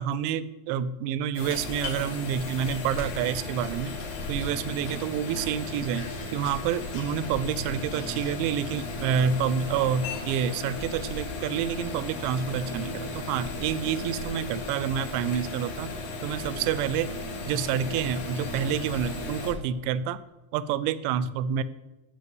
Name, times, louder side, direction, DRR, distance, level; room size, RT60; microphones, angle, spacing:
voice 1, 0.0-4.0 4.3-15.9 16.2-17.1 17.5-20.2 20.5-21.6, right 8 dB, 85° right, 15 dB, 2.6 m, -28 dB
sound 1, 1.3-19.5, left 2 dB, 75° left, 4.5 m, -35 dB
12.0 x 4.3 x 7.7 m, 1.0 s
omnidirectional pair, 5.6 m